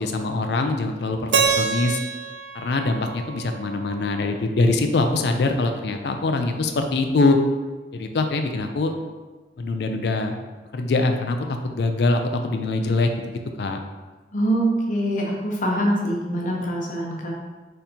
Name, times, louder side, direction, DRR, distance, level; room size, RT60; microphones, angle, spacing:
voice 1, 0.0-2.0 2.5-7.4 7.9-8.9 9.6-10.3 10.7-11.4 11.7-13.1 13.6-13.8, left 3 dB, 65° left, 5 dB, 0.4 m, -23 dB
Keyboard (musical), 1.3-4.3, right 6 dB, 90° right, 0.4 m, -26 dB
voice 2, 14.3-17.3, right 1 dB, 50° left, -2 dB, 0.8 m, -24 dB
4.3 x 3.8 x 2.7 m, 1.3 s
head